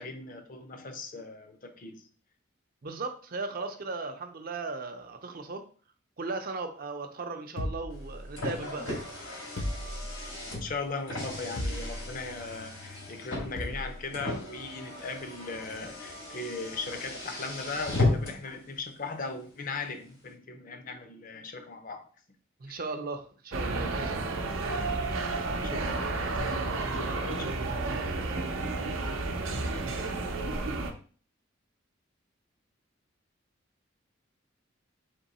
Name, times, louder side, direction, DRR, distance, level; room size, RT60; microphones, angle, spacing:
voice 1, 0.0-2.0 10.5-22.1 22.7-22.8 25.6-26.5 26.9-27.5, left 3 dB, 45° left, 7 dB, 0.5 m, -38 dB
voice 2, 2.8-5.7 6.2-9.0 22.6-24.4 27.0-27.3, right 3 dB, 45° right, 7 dB, 0.5 m, -37 dB
sound 1, 7.6-8.7 9.6-10.5 11.6-12.3 13.6-14.0, equal, 70° left, 0.9 m, -36 dB
Car, 7.9-18.5, left 2 dB, 90° left, 2.3 m, -35 dB
sound 2, 23.5-30.9, right 3 dB, 90° right, 0.6 m, -31 dB
3.7 x 3.0 x 4.1 m, 0.42 s
head